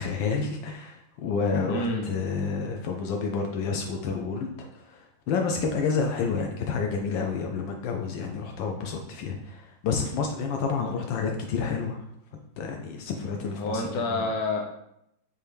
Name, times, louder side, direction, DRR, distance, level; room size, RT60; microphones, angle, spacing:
voice 1, 0.0-5.0 5.3-12.0 12.6-14.2, left 5 dB, 80° left, 2 dB, 1.3 m, -29 dB
voice 2, 1.6-2.1 10.8-10.9 13.6-14.6, left 2 dB, 60° left, 0 dB, 1.2 m, -28 dB
4.4 x 3.4 x 3.3 m, 0.77 s
omnidirectional pair, 2.1 m